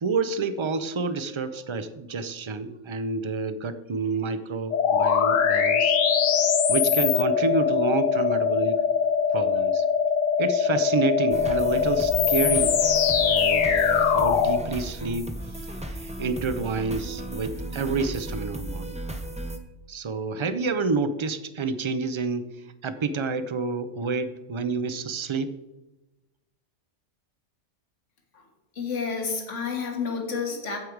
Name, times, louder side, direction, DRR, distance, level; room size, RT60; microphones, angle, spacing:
voice 1, 0.0-6.0 6.7-8.8 9.3-9.8 10.4-12.8 13.1-19.0 19.9-25.5, right 4 dB, 45° right, 11 dB, 0.3 m, -29 dB
sound 1, 4.7-14.6, left 6 dB, 90° left, 1.2 m, -22 dB
sound 2, 11.3-19.6, right 1 dB, 5° right, 0.6 m, -35 dB
voice 2, 28.8-30.8, left 5 dB, 75° left, 2 dB, 1.9 m, -30 dB
15.0 x 5.0 x 4.6 m, 1.0 s
omnidirectional pair, 1.3 m